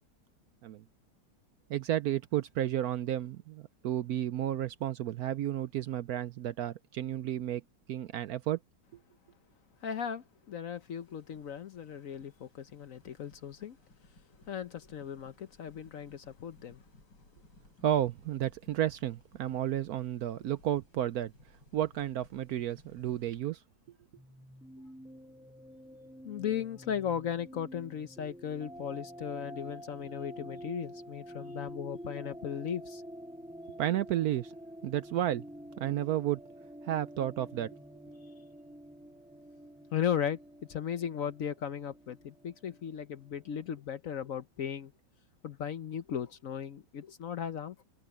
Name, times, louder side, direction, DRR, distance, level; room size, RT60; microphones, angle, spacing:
voice 1, 1.7-7.6 7.9-8.6 17.8-21.3 21.7-23.6 33.8-34.5 34.8-35.4 35.8-36.4 36.8-37.7, right 12 dB, 70° right, 0.9 m, -32 dB
voice 2, 9.8-13.8 14.5-16.8 26.2-33.0 39.9-40.4 40.7-44.9 45.4-47.8, left 8 dB, 60° left, 1.0 m, -36 dB
sound 1, 10.7-23.4, left 1 dB, 75° left, 8.7 m, -61 dB
sound 2, 24.2-43.7, equal, ahead, 4.4 m, -48 dB
omnidirectional pair, 1.9 m